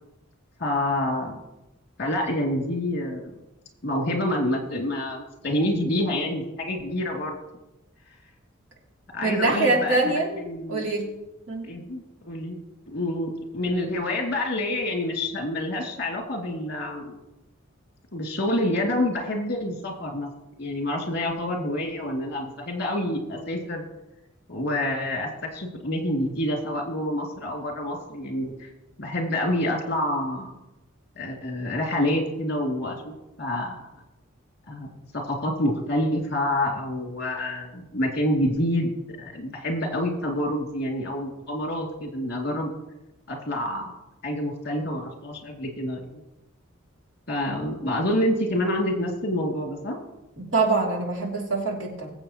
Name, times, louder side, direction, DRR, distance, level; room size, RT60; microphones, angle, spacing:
voice 1, 0.6-1.4 2.0-3.2 3.8-7.4 9.1-10.8 11.6-12.6 12.9-17.2 18.1-20.3 20.6-23.8 24.5-28.7 29.0-30.5 31.2-33.1 33.4-33.8 34.7-34.9 35.1-38.9 39.2-42.7 43.3-43.9 44.2-46.2 47.3-50.0, left 1 dB, 50° left, 1 dB, 2.6 m, -27 dB
voice 2, 9.2-10.3 10.7-11.1 11.5-11.7 50.4-52.1, right 3 dB, 65° right, -2 dB, 2.8 m, -24 dB
21.5 x 7.9 x 3.0 m, 0.93 s
head